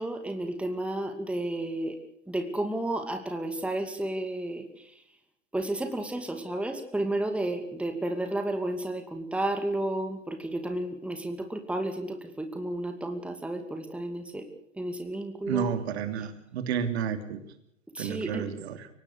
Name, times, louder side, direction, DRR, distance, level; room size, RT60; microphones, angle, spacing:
voice 1, 0.0-2.0 2.3-4.9 5.5-14.5 14.7-15.7 17.9-18.5, right 1 dB, 5° right, 6 dB, 2.5 m, -32 dB
voice 2, 15.5-17.4 18.0-18.9, right 8 dB, 55° right, 9 dB, 3.0 m, -31 dB
24.5 x 18.5 x 6.6 m, 0.74 s
hypercardioid pair, 110°, 38 cm